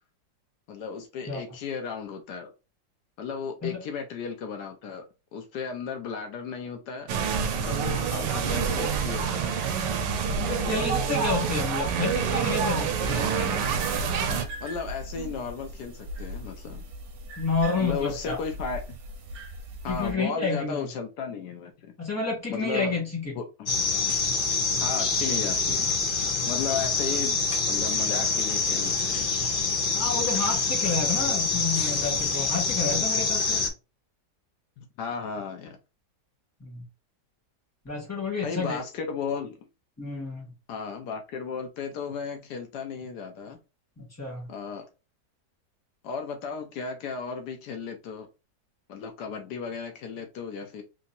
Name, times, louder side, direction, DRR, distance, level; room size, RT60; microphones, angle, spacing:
voice 1, 0.7-2.5 3.2-5.0 5.3-7.1 7.5-9.6 14.6-16.8 17.8-19.0 19.8-21.9 22.5-22.9 23.3-23.7 24.8-25.9 26.4-27.4 27.7-29.3 34.8-35.8 38.4-39.7 40.7-43.6 44.5-44.9 46.0-48.3 48.9-50.8, left 6 dB, 75° left, 1.3 m, -35 dB
sound 1, 7.1-14.4, right 6 dB, 90° right, 1.3 m, -27 dB
voice 2, 10.4-13.3 17.4-18.4 19.9-20.8 22.0-23.3 26.3-26.4 29.9-33.6 36.6-36.8 37.8-38.8 40.0-40.4 44.0-44.5, left 4 dB, 10° left, 1.3 m, -30 dB
sound 2, 13.0-20.1, right 1 dB, 65° right, 1.3 m, -39 dB
sound 3, 23.7-33.7, left 4 dB, 50° left, 0.6 m, -26 dB
3.5 x 2.9 x 2.7 m
omnidirectional pair, 1.8 m